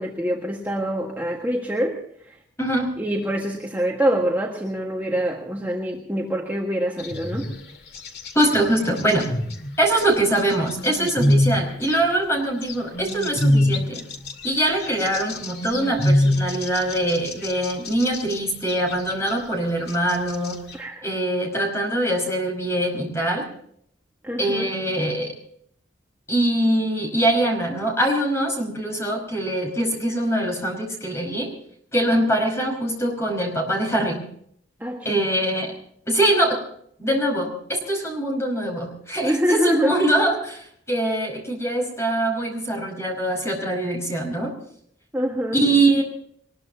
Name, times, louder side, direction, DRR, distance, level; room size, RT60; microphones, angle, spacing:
voice 1, 0.0-2.0 3.0-7.5 20.7-21.1 24.2-24.7 34.8-35.2 39.2-39.9 45.1-45.6, equal, 10° right, -2 dB, 1.7 m, -25 dB
voice 2, 2.6-3.0 8.3-9.3 9.8-14.0 14.4-20.6 21.0-23.5 24.4-25.3 26.3-31.5 31.9-34.2 35.0-35.8 36.1-36.6 37.0-44.5 45.5-46.0, right 1 dB, 15° left, 1 dB, 5.3 m, -23 dB
sound 1, 7.0-7.6 7.9-8.5 8.8-10.0 10.5-12.0 12.6-18.4 18.7-19.3 19.9-20.7, left 1 dB, 55° left, 2.3 m, -24 dB
22.5 x 21.0 x 2.9 m, 0.66 s
head